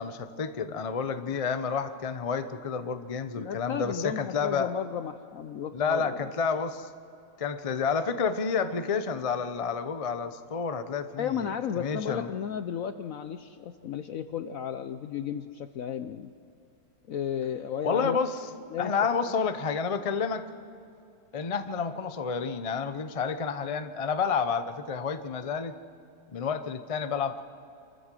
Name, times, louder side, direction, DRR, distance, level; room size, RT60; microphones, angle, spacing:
voice 1, 0.0-4.7 5.7-6.9 7.4-12.3 17.8-18.4 18.8-20.4 21.3-25.7 26.3-27.4, left 5 dB, 50° left, 10 dB, 0.4 m, -30 dB
voice 2, 3.4-6.3 11.2-16.3 17.1-18.2 18.7-19.0 19.2-19.3, left 8 dB, 70° left, 10 dB, 0.8 m, -34 dB
27.0 x 14.0 x 7.6 m, 2.7 s
omnidirectional pair, 2.0 m